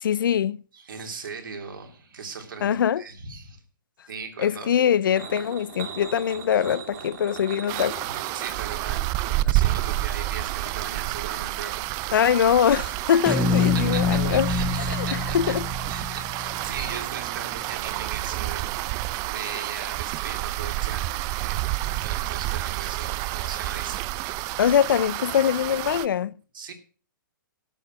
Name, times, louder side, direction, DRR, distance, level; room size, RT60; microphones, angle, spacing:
voice 1, 0.0-0.6 2.6-3.0 4.4-8.1 12.1-14.5 14.9-15.1 15.3-15.7 24.6-26.3, left 9 dB, 70° left, 0.5 m, -23 dB
voice 2, 0.7-3.6 4.1-4.8 8.3-11.8 13.3-15.5 15.9-18.7 19.2-21.6 21.9-24.1 26.5-26.7, right 5 dB, 75° right, 3.1 m, -38 dB
sound 1, 5.1-10.4, right 7 dB, 55° right, 3.0 m, -40 dB
sound 2, 7.7-26.1, right 17 dB, 30° right, 0.5 m, -29 dB
sound 3, 13.3-17.5, left 4 dB, 5° left, 0.9 m, -26 dB
13.0 x 6.8 x 6.2 m
hypercardioid pair, 125°, 11 cm